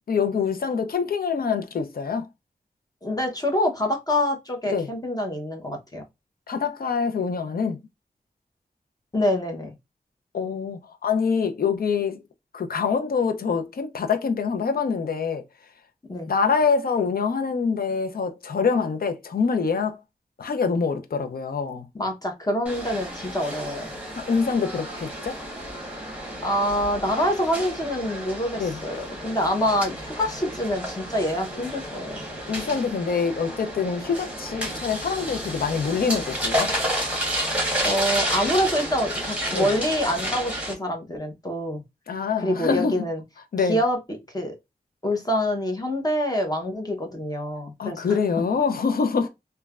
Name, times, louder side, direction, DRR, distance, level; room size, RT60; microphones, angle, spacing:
voice 1, 0.1-2.3 4.7-4.9 6.5-7.8 10.3-12.2 12.5-15.4 16.3-20.0 20.4-21.9 24.3-25.4 28.6-28.8 32.5-36.7 39.5-39.7 42.1-42.9 43.5-43.8 47.8-49.3, left 5 dB, 65° left, 0.5 m, -25 dB
voice 2, 3.0-6.0 9.1-9.7 16.1-16.3 21.9-23.9 26.4-32.2 37.8-41.8 42.4-43.2 43.6-44.0 44.3-44.5 45.0-48.2, equal, 25° left, 0.8 m, -26 dB
sound 1, 22.7-40.7, equal, 10° right, 1.1 m, -31 dB
3.1 x 2.2 x 2.3 m
wide cardioid pair, 90°, 16 cm